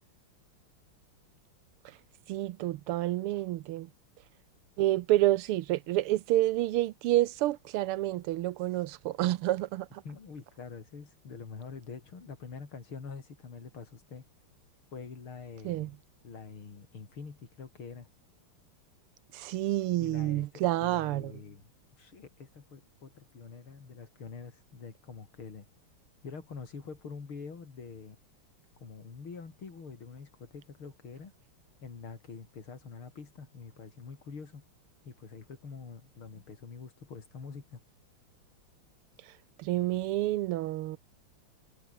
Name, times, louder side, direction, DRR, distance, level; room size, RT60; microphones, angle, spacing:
voice 1, 2.3-3.9 4.8-9.9 15.6-15.9 19.3-21.3 39.6-41.0, right 15 dB, 85° right, 1.6 m, -29 dB
voice 2, 10.0-14.2 14.9-16.0 16.2-18.1 20.0-25.7 26.2-28.2 28.8-31.3 31.8-34.7 35.0-37.8, left 5 dB, 70° left, 4.3 m, -45 dB
omnidirectional pair, 2.4 m